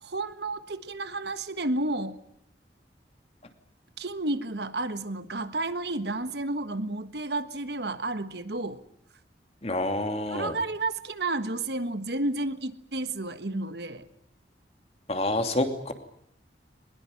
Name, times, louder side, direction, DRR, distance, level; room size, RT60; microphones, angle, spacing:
voice 1, 0.0-2.2 4.0-8.8 10.3-14.1, right 2 dB, 70° right, 1.5 m, -31 dB
voice 2, 9.6-10.5 15.1-15.9, left 1 dB, 35° left, 2.9 m, -28 dB
22.0 x 21.0 x 9.8 m
head